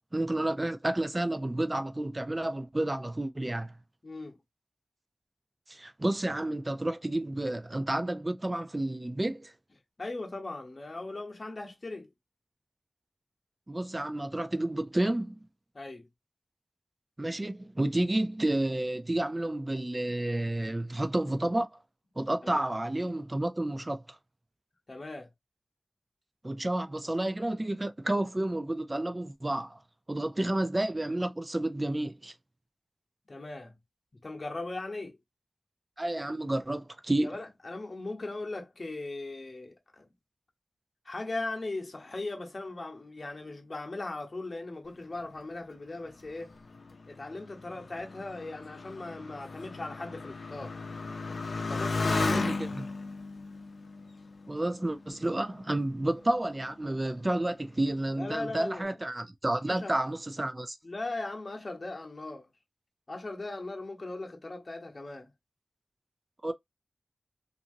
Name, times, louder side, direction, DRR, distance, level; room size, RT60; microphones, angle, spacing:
voice 1, 0.1-3.7 5.7-9.5 13.7-15.4 17.2-21.7 22.2-24.2 26.4-29.8 30.1-32.3 36.0-37.3 52.3-52.9 54.5-60.8 66.4-66.5, right 1 dB, 30° right, 0.4 m, -30 dB
voice 2, 4.0-4.4 10.0-12.1 15.7-16.1 22.4-22.7 24.9-25.3 30.4-30.5 33.3-33.8 34.2-35.2 37.2-40.1 41.0-46.5 47.1-50.8 51.7-52.5 58.2-59.0 59.7-59.9 60.8-62.5 63.1-65.3, left 2 dB, 50° left, 0.9 m, -39 dB
Motorcycle, 46.3-55.3 56.0-56.6, left 3 dB, 75° left, 0.6 m, -35 dB
2.8 x 2.6 x 2.6 m
wide cardioid pair, 60°, 0 cm